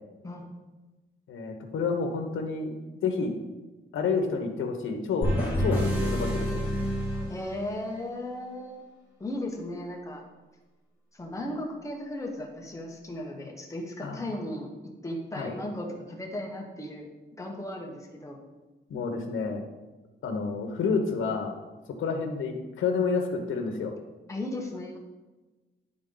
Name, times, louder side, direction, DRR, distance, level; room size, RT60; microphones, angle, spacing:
voice 1, 1.3-2.7 3.0-3.3 3.9-5.3 5.6-6.5 14.0-14.2 15.4-15.5 18.9-19.6 20.2-21.6 22.0-23.9, left 4 dB, 80° left, 4 dB, 1.0 m, -29 dB
sound 1, 5.2-8.0, equal, 10° right, 1.6 m, -28 dB
voice 2, 7.3-8.8 9.2-10.2 11.1-17.1 17.4-18.4 24.3-25.0, left 1 dB, 15° left, 0 dB, 1.0 m, -36 dB
11.0 x 3.8 x 3.9 m, 1.2 s
wide cardioid pair, 175°, 20 cm